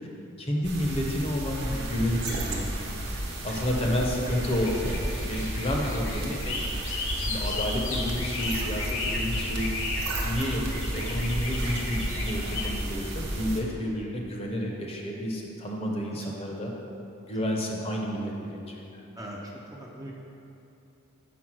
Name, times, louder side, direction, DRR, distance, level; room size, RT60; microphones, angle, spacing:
voice 1, 0.4-2.7 3.4-4.7 5.3-6.6 7.2-9.7 10.2-16.7 17.3-18.8, equal, 25° left, -1 dB, 0.7 m, -30 dB
sound 1, 0.6-13.6, right 1 dB, 50° right, 0.9 m, -32 dB
sound 2, 2.4-12.7, left 2 dB, 55° left, 1.1 m, -36 dB
voice 2, 3.9-4.2 16.2-16.3 19.2-19.4 19.8-20.1, right 1 dB, 15° right, -3 dB, 0.5 m, -40 dB
6.0 x 4.7 x 6.1 m, 2.8 s
head